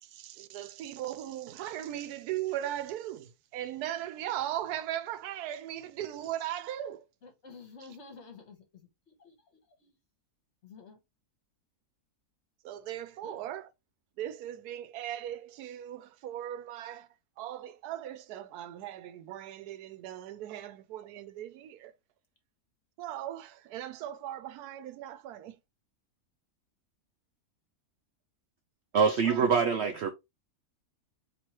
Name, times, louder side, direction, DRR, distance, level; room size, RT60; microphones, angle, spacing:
voice 1, 0.0-7.0 12.6-13.7 14.2-17.1 17.4-21.9 23.0-25.6 29.2-30.0, right 12 dB, 85° right, 1.1 m, -38 dB
voice 2, 7.2-9.9 10.6-11.0 13.2-13.4 29.2-29.5, left 4 dB, 50° left, 1.4 m, -51 dB
voice 3, 28.9-30.1, right 6 dB, 65° right, 0.6 m, -24 dB
4.5 x 2.9 x 2.9 m
omnidirectional pair, 1.6 m